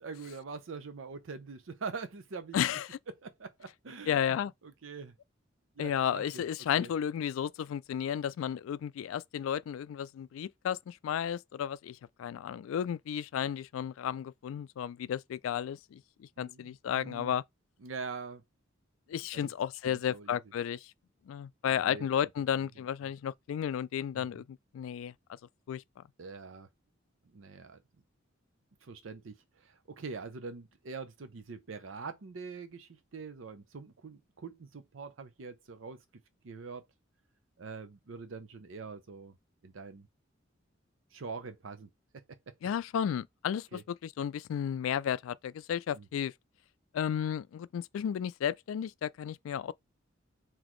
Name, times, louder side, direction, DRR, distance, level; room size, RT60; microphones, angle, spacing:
voice 1, 0.0-2.6 3.1-4.4 4.6-5.1 5.8-6.4 6.8-6.9 16.4-17.3 17.8-18.4 19.3-19.5 19.8-20.4 21.8-22.1 22.6-22.7 24.1-24.4 26.2-26.7 27.3-27.8 28.8-36.0 36.4-36.9 37.6-39.4 39.6-40.1 41.1-41.9 42.1-42.5 43.7-43.8 45.9-46.1, right 4 dB, 70° right, 0.6 m, -44 dB
voice 2, 2.5-3.0 4.1-4.5 5.8-17.4 19.1-20.9 21.3-25.1 25.7-25.8 42.6-46.3 46.9-49.7, left 9 dB, 85° left, 0.3 m, -33 dB
4.0 x 2.9 x 3.0 m
head